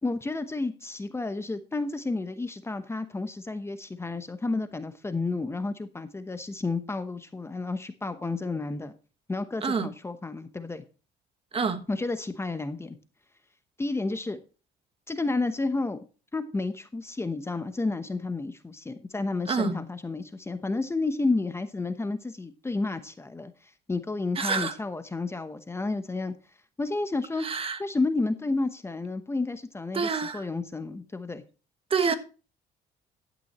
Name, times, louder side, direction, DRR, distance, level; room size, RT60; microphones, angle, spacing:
voice 1, 0.0-8.9 9.3-10.8 11.9-13.0 13.8-14.4 15.1-16.0 16.3-26.3 26.8-27.5 27.8-31.4 32.0-32.1, left 3 dB, 15° left, 1.0 m, -31 dB
voice 2, 11.5-11.8 19.5-19.8 24.4-24.7 27.4-27.8 29.9-30.5 31.9-32.1, right 5 dB, 35° right, 1.4 m, -27 dB
12.0 x 9.4 x 3.1 m
cardioid pair, 110°, 17 cm